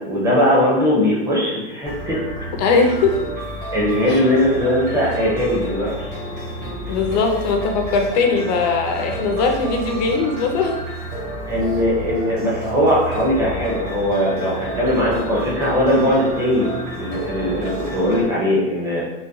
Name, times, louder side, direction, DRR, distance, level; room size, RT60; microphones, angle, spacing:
voice 1, 0.0-2.2 3.7-6.1 10.0-10.1 11.5-16.7 16.9-19.0, equal, 10° right, -6 dB, 0.6 m, -19 dB
sound 1, 1.8-18.2, right 1 dB, 35° right, 1.0 m, -31 dB
voice 2, 2.6-3.3 4.1-4.2 6.9-10.8, left 4 dB, 40° left, 2 dB, 0.4 m, -20 dB
3.9 x 2.1 x 2.6 m, 1.0 s
supercardioid pair, 160°, 33 cm